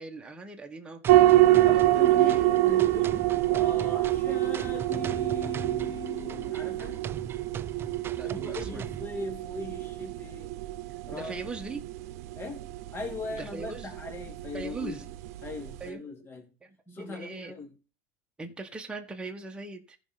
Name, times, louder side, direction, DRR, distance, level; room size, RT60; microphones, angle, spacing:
voice 1, 0.0-1.4 2.2-2.5 8.1-8.8 11.1-11.9 13.3-13.9 14.5-15.1 15.8-16.3 16.6-17.5 18.4-20.0, right 3 dB, 10° right, 1.5 m, -40 dB
sound 1, 1.0-9.0, right 7 dB, 30° right, 0.4 m, -40 dB
sound 2, 1.1-15.9, right 15 dB, 75° right, 0.7 m, -26 dB
voice 2, 1.6-7.0 8.2-10.5 11.1-11.3 12.3-12.6 12.9-15.0 15.4-16.5 16.9-17.7, left 3 dB, 25° left, 3.2 m, -40 dB
14.5 x 5.6 x 4.1 m
supercardioid pair, 120°, 8 cm